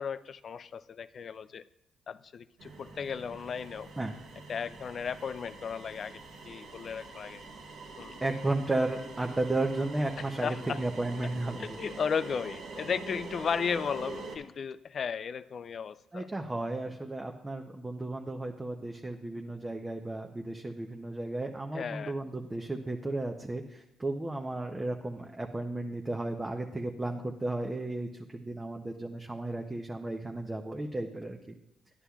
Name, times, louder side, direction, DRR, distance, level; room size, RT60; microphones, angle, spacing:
voice 1, 0.0-1.6 2.1-3.9 4.5-6.2 6.4-7.5 8.0-8.2 10.4-10.8 11.6-16.3 21.7-22.1, left 6 dB, 50° left, 15 dB, 0.3 m, -35 dB
sound 1, 2.6-14.4, right 3 dB, 80° right, 1.3 m, -45 dB
voice 2, 8.2-11.8 16.1-31.6, right 2 dB, 15° right, 3 dB, 0.6 m, -34 dB
11.0 x 9.8 x 2.3 m, 0.89 s
cardioid pair, 90°, 0 cm